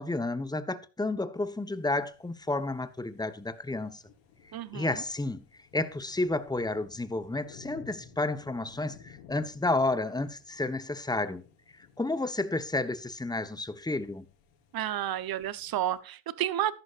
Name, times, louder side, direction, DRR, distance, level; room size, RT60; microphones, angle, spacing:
voice 1, 0.0-4.0 4.7-5.4 5.7-11.4 12.0-14.3, left 2 dB, 10° left, 1.2 m, -31 dB
sound 1, 1.3-16.0, left 6 dB, 85° left, 4.5 m, -57 dB
voice 2, 4.5-5.0 14.7-16.7, right 12 dB, 55° right, 1.1 m, -31 dB
14.0 x 11.0 x 2.6 m
supercardioid pair, 80°, 44 cm